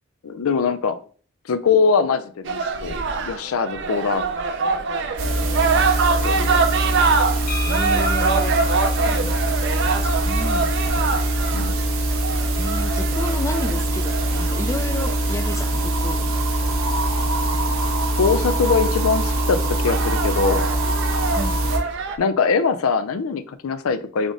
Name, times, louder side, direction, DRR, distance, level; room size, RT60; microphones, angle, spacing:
voice 1, 0.2-1.0 1.5-4.2 6.2-6.6 9.1-9.4 11.5-11.8 18.2-20.7 22.2-24.3, left 5 dB, 85° left, 12 dB, 0.5 m, -22 dB
sound 1, 2.5-16.7 18.2-18.3 18.7-19.2 19.7-22.2, right 4 dB, 60° right, 0.5 m, -25 dB
sound 2, 5.2-21.8, right 1 dB, 85° right, 1.1 m, -23 dB
sound 3, 7.5-11.3, left 2 dB, 45° left, 0.7 m, -37 dB
voice 2, 7.6-8.6 10.0-11.0 12.6-16.3 21.4-21.6, left 2 dB, 15° left, 8 dB, 0.3 m, -31 dB
3.8 x 3.6 x 3.6 m, 0.44 s
head